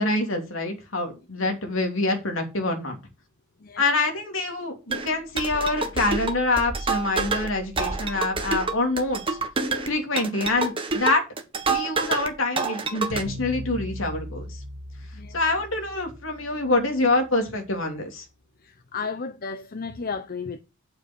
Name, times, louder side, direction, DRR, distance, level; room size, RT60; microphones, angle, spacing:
voice 1, 0.0-3.0 3.8-9.4 9.8-11.2 11.7-14.6 15.3-18.2, left 2 dB, 70° left, 2.9 m, -26 dB
sound 1, 4.9-12.3 12.6-13.2, right 3 dB, 25° right, 1.6 m, -28 dB
sound 2, 13.1-17.4, equal, 90° right, 1.2 m, -39 dB
voice 2, 18.6-20.6, left 5 dB, 45° left, 0.8 m, -33 dB
8.7 x 7.6 x 4.5 m
head